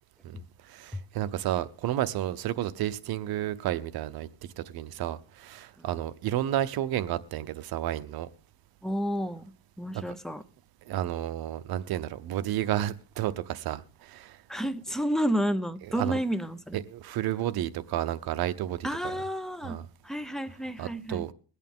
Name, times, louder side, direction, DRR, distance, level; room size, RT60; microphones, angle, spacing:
voice 1, 0.7-4.3 4.7-8.3 9.9-10.0 10.9-14.4 16.0-16.2 16.7-19.2 19.6-19.8 20.8-21.3, right 12 dB, 65° right, 0.8 m, -31 dB
voice 2, 8.8-9.5 9.8-10.4 14.5-16.8 18.8-19.8 20.0-21.3, equal, ahead, 0.6 m, -30 dB
21.5 x 8.4 x 3.6 m
cardioid pair, 130°, 40 cm